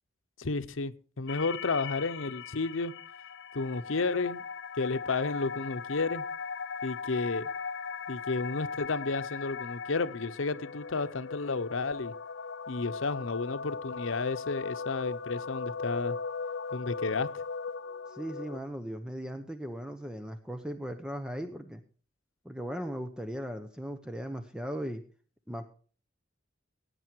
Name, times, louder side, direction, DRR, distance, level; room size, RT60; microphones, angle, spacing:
voice 1, 0.4-2.9 3.5-4.4 4.8-6.2 6.8-7.5 8.1-12.1 12.7-16.2 16.7-17.3, left 3 dB, 85° left, 13 dB, 0.9 m, -32 dB
sound 1, 1.3-18.6, left 5 dB, 60° left, 0.6 m, -38 dB
voice 2, 18.1-21.8 22.4-25.0 25.5-25.7, equal, 5° right, 7 dB, 0.9 m, -38 dB
16.5 x 9.8 x 4.6 m, 0.41 s
head